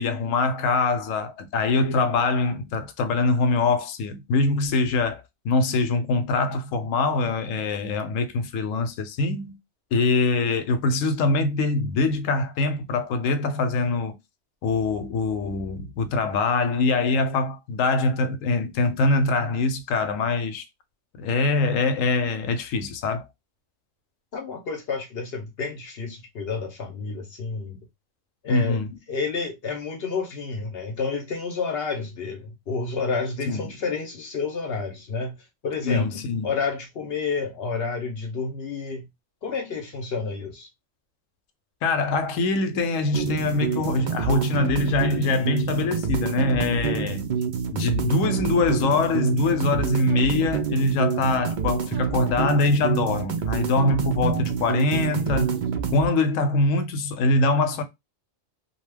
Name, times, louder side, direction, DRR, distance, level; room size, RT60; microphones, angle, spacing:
voice 1, 0.0-9.6 9.9-14.1 14.6-20.6 21.2-23.2 28.5-29.0 33.5-33.7 35.8-36.5 41.8-47.4 47.7-55.6 55.9-57.8, left 3 dB, 80° left, 0.9 m, -23 dB
voice 2, 24.3-27.8 28.4-28.8 29.1-35.4 35.6-36.1 36.4-39.1 39.4-40.7, left 4 dB, 60° left, 0.7 m, -30 dB
sound 1, 43.1-56.1, right 7 dB, 85° right, 0.4 m, -27 dB
2.6 x 2.2 x 3.3 m
omnidirectional pair, 1.4 m